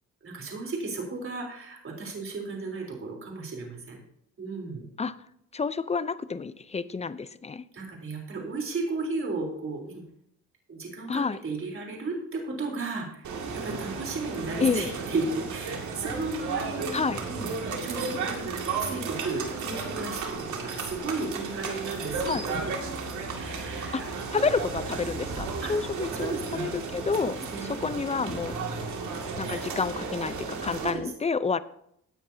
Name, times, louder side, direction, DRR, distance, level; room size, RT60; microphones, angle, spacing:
voice 1, 0.2-4.0 4.4-4.9 7.7-10.0 10.7-17.5 17.8-18.5 18.8-22.6 23.3-24.1 25.6-25.8 26.2-26.7 27.5-27.7 29.4-29.6 30.8-31.0, right 3 dB, 45° right, 0 dB, 3.8 m, -34 dB
voice 2, 5.5-7.6 11.1-11.4 14.6-14.9 16.9-17.2 22.2-22.4 23.9-28.5 29.4-31.6, left 5 dB, 20° left, 15 dB, 0.6 m, -29 dB
sound 1, 13.2-30.9, right 4 dB, 70° right, 2.3 m, -34 dB
16.5 x 9.7 x 2.8 m, 0.72 s
cardioid pair, 90°, 30 cm